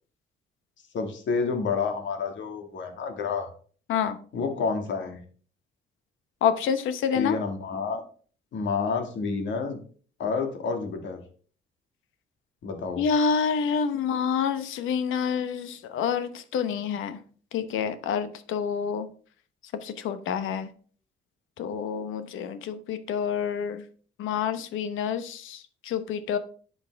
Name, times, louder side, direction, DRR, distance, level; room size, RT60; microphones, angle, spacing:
voice 1, 0.9-3.5 4.3-5.2 7.1-8.0 8.5-9.8 10.2-11.2 12.6-13.0, left 5 dB, 70° left, 4 dB, 2.1 m, -29 dB
voice 2, 6.4-7.4 13.0-17.2 17.5-19.1 19.8-20.7 21.6-23.8 24.2-26.4, left 7 dB, 85° left, 11 dB, 1.0 m, -28 dB
10.5 x 5.8 x 3.5 m, 0.43 s
cardioid pair, 90°, 20 cm